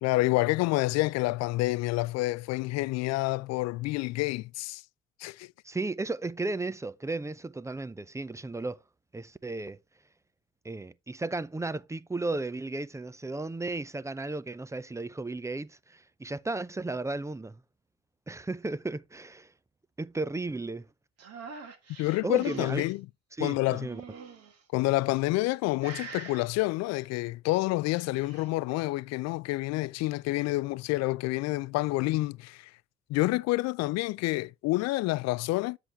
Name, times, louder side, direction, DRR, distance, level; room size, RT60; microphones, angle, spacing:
voice 1, 0.0-4.8 5.2-5.5 22.0-23.1 23.4-23.9 24.7-32.7 33.1-35.8, left 20 dB, 60° left, 0.5 m, -28 dB
voice 2, 5.6-8.8 9.1-9.8 10.6-17.6 18.3-19.5 20.0-20.9 22.2-22.8 23.4-24.0, right 2 dB, 10° right, 0.5 m, -34 dB
sound 1, 21.2-22.9 23.7-24.6 25.2-25.6 25.8-26.4 27.8-28.5, right 5 dB, 55° right, 1.9 m, -44 dB
8.2 x 7.7 x 3.3 m
hypercardioid pair, 50°, 30 cm